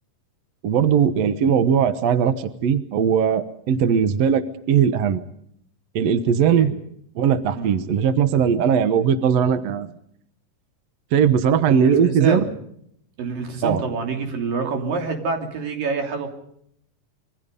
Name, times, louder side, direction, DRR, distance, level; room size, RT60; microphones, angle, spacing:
voice 1, 0.6-5.2 6.0-6.7 7.2-9.9 11.1-12.4 13.6-13.8, right 7 dB, 60° right, 11 dB, 1.9 m, -19 dB
voice 2, 11.7-12.5 13.2-16.3, right 4 dB, 80° right, 3 dB, 4.8 m, -26 dB
26.5 x 23.5 x 5.3 m, 0.71 s
omnidirectional pair, 3.9 m